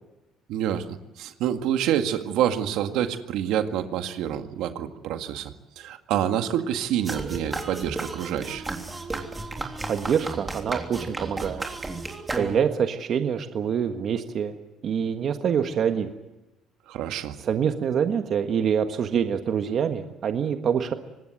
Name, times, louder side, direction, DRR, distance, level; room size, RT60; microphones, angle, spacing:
voice 1, 0.5-0.8 1.2-8.7 16.9-17.3, right 10 dB, 75° right, 7 dB, 1.9 m, -27 dB
sound 1, 7.1-12.9, right 3 dB, 15° right, 3.3 m, -33 dB
voice 2, 9.9-11.6 12.4-14.5 14.8-16.1 17.4-20.9, right 7 dB, 45° right, 6 dB, 1.5 m, -25 dB
25.5 x 19.5 x 7.9 m, 1.0 s
cardioid pair, 130°, 0 cm